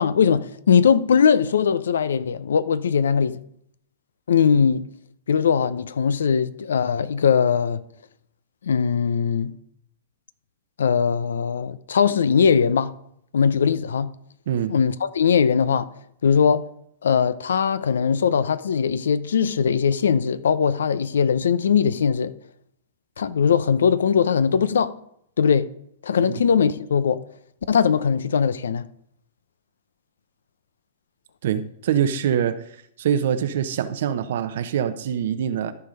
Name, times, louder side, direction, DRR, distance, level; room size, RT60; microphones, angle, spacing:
voice 1, 0.0-3.4 4.3-4.8 5.3-7.8 8.6-9.5 10.8-12.9 13.3-14.1 14.7-15.9 16.2-16.6 17.0-22.3 23.2-24.9 25.4-25.7 26.0-27.2 27.7-28.8, left 6 dB, 80° left, 0.6 m, -20 dB
voice 2, 31.4-32.6 33.0-35.7, right 9 dB, 65° right, 0.8 m, -24 dB
13.5 x 4.9 x 5.3 m
hypercardioid pair, 120°, 0 cm